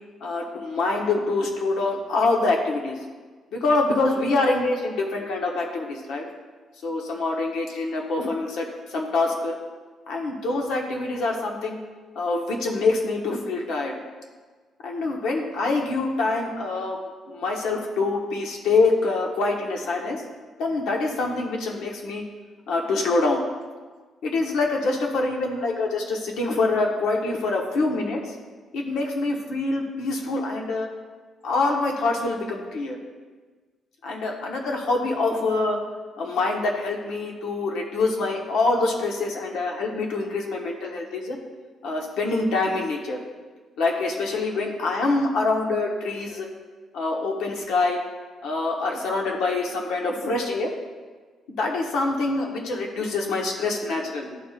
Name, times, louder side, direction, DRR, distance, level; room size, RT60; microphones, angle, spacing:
voice 1, 0.2-3.0 3.5-6.2 6.8-9.5 10.1-11.8 12.1-14.0 14.8-17.0 17.3-20.2 20.6-22.2 22.7-23.4 24.2-28.3 28.7-30.9 31.4-33.0 34.0-35.8 36.2-41.4 41.8-43.2 43.8-46.5 46.9-48.0 48.4-50.7 51.6-54.4, left 3 dB, 80° left, 0 dB, 1.2 m, -25 dB
12.5 x 4.3 x 2.5 m, 1.4 s
cardioid pair, 145°, 0 cm